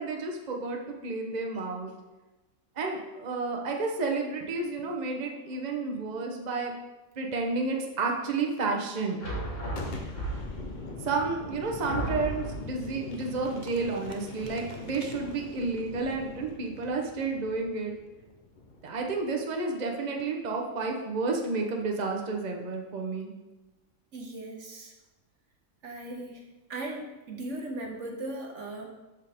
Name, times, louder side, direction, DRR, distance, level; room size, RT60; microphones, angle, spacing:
voice 1, 0.0-1.9 2.8-6.7 7.2-9.2 11.0-17.9 18.8-23.3, right 3 dB, 35° right, 1 dB, 1.0 m, -31 dB
sound 1, 9.2-10.7 11.4-11.5 11.9-12.7, right 1 dB, 60° left, 3.0 m, -33 dB
Boom, 9.7-19.3, left 3 dB, 40° left, 0.9 m, -42 dB
voice 2, 24.1-24.9 25.8-26.4 26.7-28.9, right 2 dB, 60° right, 2 dB, 1.2 m, -38 dB
12.5 x 5.0 x 3.5 m, 1.1 s
omnidirectional pair, 1.5 m